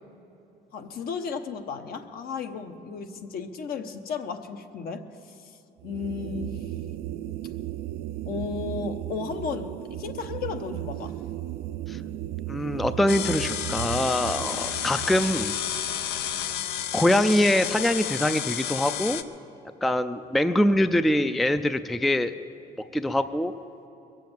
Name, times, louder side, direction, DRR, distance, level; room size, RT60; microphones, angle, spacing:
voice 1, 0.7-6.7 8.2-11.1, left 5 dB, 60° left, 7 dB, 1.0 m, -34 dB
sound 1, 5.8-17.1, right 13 dB, 75° right, 0.5 m, -36 dB
voice 2, 12.5-15.5 16.9-19.2 19.8-22.3 22.9-23.5, left 1 dB, ahead, 11 dB, 0.3 m, -24 dB
sound 2, 13.1-19.2, left 10 dB, 85° left, 0.7 m, -31 dB
22.0 x 7.6 x 7.2 m, 2.9 s
cardioid pair, 110°, 17 cm